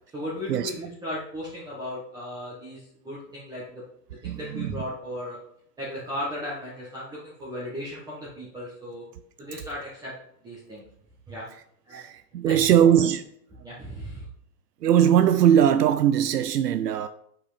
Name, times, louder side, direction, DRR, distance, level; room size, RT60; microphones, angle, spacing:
voice 1, 0.1-3.8 4.2-5.4 5.8-9.0 9.4-10.1 10.4-10.9 11.3-11.4 11.9-12.1 12.4-12.9 13.6-14.2, equal, 10° right, 1.4 m, -36 dB
voice 2, 4.2-4.7 11.9-13.2 14.8-17.1, right 9 dB, 85° right, 0.8 m, -20 dB
7.9 x 6.0 x 5.1 m
hypercardioid pair, 160°, 47 cm